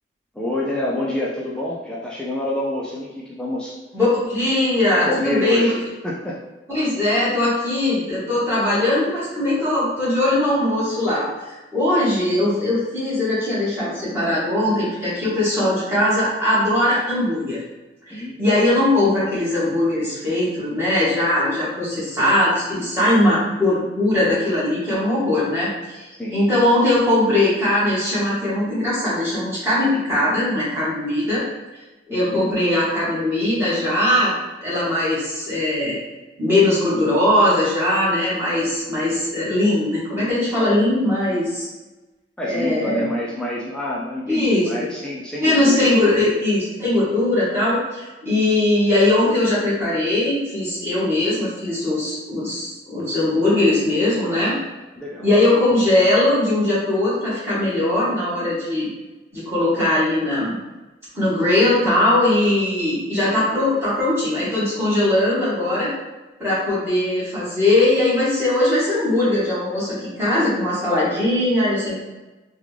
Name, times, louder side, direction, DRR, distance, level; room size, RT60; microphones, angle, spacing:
voice 1, 0.3-3.7 5.0-6.4 18.1-18.5 18.7-18.8 26.2-26.4 32.1-32.5 42.4-46.1 55.0-55.3, left 1 dB, 5° left, -5 dB, 0.4 m, -27 dB
voice 2, 3.9-5.7 6.7-17.6 18.1-31.4 32.1-34.3 34.6-36.0 36.4-41.7 42.4-43.1 44.3-44.7 45.4-54.6 55.2-58.9 59.3-60.6 61.1-65.9 66.4-72.0, left 1 dB, 15° right, -10 dB, 1.4 m, -20 dB
3.6 x 2.3 x 3.2 m, 1.1 s
head